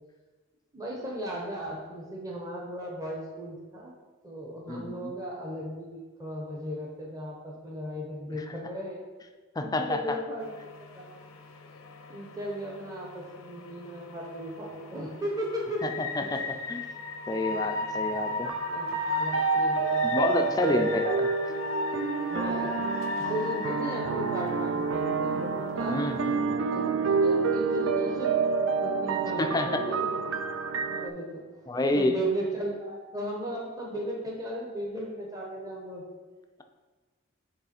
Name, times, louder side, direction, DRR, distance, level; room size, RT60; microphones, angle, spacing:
voice 1, 0.7-3.9 4.2-9.0 9.6-10.5 10.9-11.0 12.1-15.8 16.2-16.3 17.3-17.6 18.7-20.1 20.7-20.9 22.3-22.9 23.2-26.0 26.7-28.5 28.8-30.3 30.9-31.6 31.9-36.0, right 1 dB, 15° right, -2 dB, 0.9 m, -36 dB
voice 2, 4.7-5.1 9.6-10.2 15.8-16.4 16.7-16.9 17.3-18.5 20.0-21.3 25.9-26.6 29.4-29.8 31.7-32.2, left 2 dB, 20° left, 6 dB, 0.4 m, -29 dB
sound 1, 10.4-26.3, left 3 dB, 85° left, 0.7 m, -36 dB
sound 2, 18.4-31.1, right 5 dB, 65° right, 0.4 m, -28 dB
7.9 x 3.2 x 4.3 m, 1.3 s
head